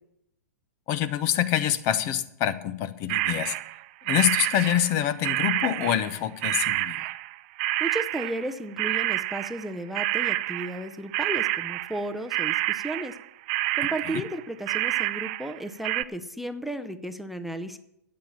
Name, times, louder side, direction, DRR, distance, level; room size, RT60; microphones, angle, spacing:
voice 1, 0.9-3.6 4.1-7.1, left 11 dB, 35° left, 15 dB, 0.8 m, -26 dB
sound 1, 3.1-3.8 4.1-6.2 6.4-15.6 15.8-16.0, right 18 dB, 40° right, 0.5 m, -28 dB
voice 2, 7.8-13.2 13.7-17.8, right 1 dB, ahead, 7 dB, 0.7 m, -34 dB
12.0 x 8.8 x 7.3 m, 0.81 s
figure-of-eight pair, 115°, 9 cm